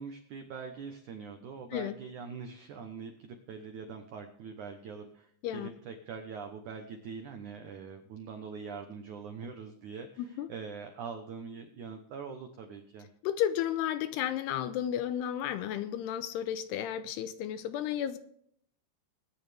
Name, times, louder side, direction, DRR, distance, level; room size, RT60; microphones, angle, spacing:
voice 1, 0.0-13.1, right 5 dB, 85° right, 6 dB, 1.7 m, -43 dB
voice 2, 10.2-10.5 13.2-18.2, left 10 dB, 80° left, 12 dB, 2.6 m, -33 dB
21.0 x 9.9 x 3.4 m, 0.68 s
omnidirectional pair, 5.2 m